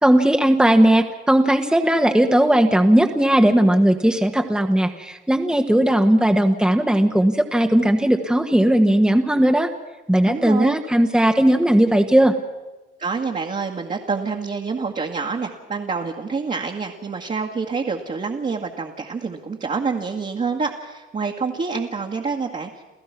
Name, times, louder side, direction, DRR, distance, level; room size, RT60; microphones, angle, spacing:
voice 1, 0.0-9.7 10.1-12.3, right 1 dB, 5° right, 4 dB, 1.4 m, -17 dB
voice 2, 10.2-10.8 13.0-22.8, right 4 dB, 40° right, 0 dB, 2.0 m, -27 dB
29.0 x 15.0 x 6.1 m, 1.1 s
cardioid pair, 90°, 20 cm